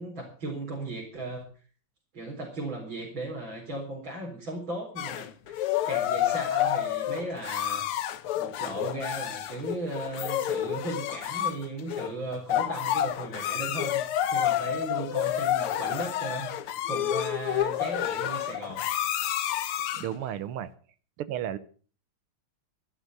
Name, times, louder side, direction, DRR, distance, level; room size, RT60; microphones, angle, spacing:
voice 1, 0.0-1.5 2.1-7.9 8.3-18.8, right 2 dB, 60° right, -3 dB, 4.9 m, -37 dB
sound 1, 5.0-20.2, left 11 dB, 85° left, 1.9 m, -29 dB
voice 2, 20.0-20.7 21.2-21.6, right 11 dB, 90° right, 14 dB, 1.8 m, -33 dB
14.5 x 12.5 x 6.7 m, 0.42 s
omnidirectional pair, 2.4 m